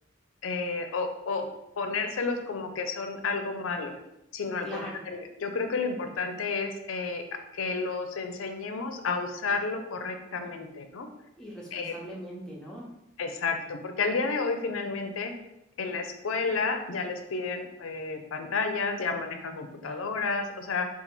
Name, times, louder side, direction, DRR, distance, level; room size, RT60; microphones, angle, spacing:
voice 1, 0.4-1.5 1.8-3.9 4.3-7.2 7.5-11.1 11.7-11.9 13.2-15.3 15.8-20.9, left 4 dB, 85° left, 6 dB, 0.5 m, -31 dB
voice 2, 4.6-5.0 11.4-12.9 19.8-20.0, equal, 5° left, -4 dB, 0.7 m, -40 dB
4.0 x 2.4 x 4.3 m, 0.85 s
head